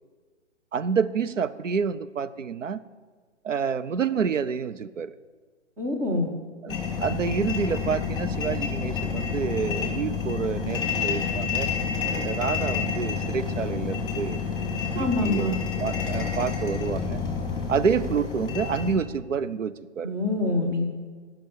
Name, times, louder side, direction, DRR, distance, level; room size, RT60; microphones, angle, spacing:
voice 1, 0.7-2.8 3.4-5.1 6.6-11.7 12.1-14.4 14.9-17.2 17.7-20.1, right 6 dB, 85° right, 14 dB, 0.6 m, -28 dB
voice 2, 5.8-6.3 15.0-15.6 20.0-20.8, left 2 dB, 5° right, 2 dB, 0.4 m, -25 dB
sound 1, 6.7-18.9, left 6 dB, 10° left, 2.4 m, -29 dB
15.5 x 6.0 x 6.8 m, 1.5 s
figure-of-eight pair, 125°, 37 cm